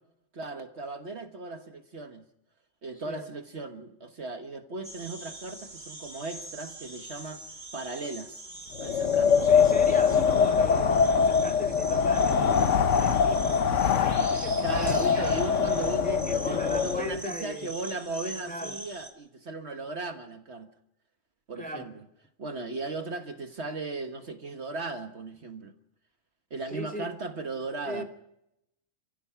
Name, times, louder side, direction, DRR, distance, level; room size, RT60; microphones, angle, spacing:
voice 1, 0.3-2.2 2.8-7.4 7.7-8.4 8.8-9.5 14.6-20.7 21.5-22.0 22.4-25.7 26.5-28.0, right 3 dB, 55° right, 1.6 m, -37 dB
sound 1, 4.8-19.1, right 1 dB, 35° right, 2.9 m, -43 dB
Wind, 8.8-17.2, left 6 dB, 70° left, 1.3 m, -23 dB
voice 2, 9.4-15.0 16.0-17.7 18.4-18.8 21.6-21.9 26.7-27.1 27.9-28.0, equal, 5° left, 2.2 m, -39 dB
29.0 x 16.0 x 5.8 m
omnidirectional pair, 1.4 m